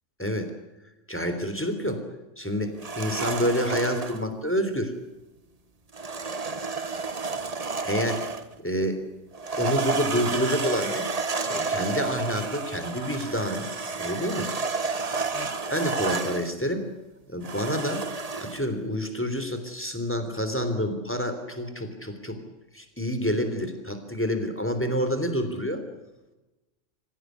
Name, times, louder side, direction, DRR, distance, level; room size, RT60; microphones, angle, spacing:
voice 1, 0.2-0.5 1.1-2.0 2.4-4.9 7.8-8.2 8.6-9.1 9.6-11.1 11.5-13.7 14.0-14.5 15.3-16.9 17.3-18.1 18.4-22.4 22.7-25.8, equal, 10° left, 7 dB, 3.4 m, -28 dB
sound 1, 2.8-4.2 5.9-8.5 9.3-16.5 17.4-18.7, right 4 dB, 30° right, 1.2 m, -31 dB
25.5 x 16.5 x 9.5 m, 1.0 s
omnidirectional pair, 1.3 m